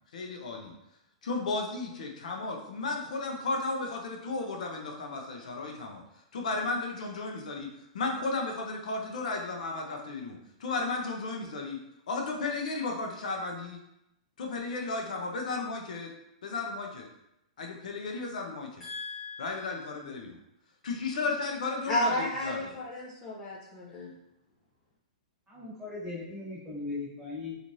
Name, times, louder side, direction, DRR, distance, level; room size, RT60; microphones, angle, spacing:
voice 1, 0.1-0.7 1.2-6.0 6.3-7.7 7.9-11.8 12.1-13.8 14.4-16.1 16.4-17.1 17.6-18.9 19.4-20.4 20.8-22.7, left 3 dB, 75° left, 1 dB, 0.6 m, -34 dB
voice 2, 18.8-19.6 21.9-24.1, left 1 dB, 20° left, -6 dB, 0.5 m, -33 dB
voice 3, 25.5-27.6, left 3 dB, 10° right, -9 dB, 1.1 m, -38 dB
3.0 x 2.5 x 2.6 m, 0.85 s
hypercardioid pair, 170°, 4 cm